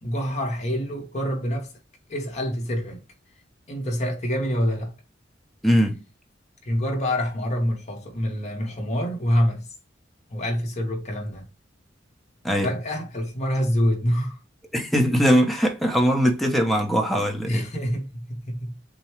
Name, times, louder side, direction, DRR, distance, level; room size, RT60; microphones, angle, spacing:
voice 1, 0.0-1.7 2.1-3.0 3.7-4.9 6.6-9.7 10.3-11.5 12.6-14.4 17.4-18.7, equal, 40° left, 1.4 m, -26 dB
voice 2, 5.6-6.0 12.4-12.8 14.7-17.7, equal, ahead, 0.9 m, -21 dB
6.9 x 2.3 x 3.1 m
head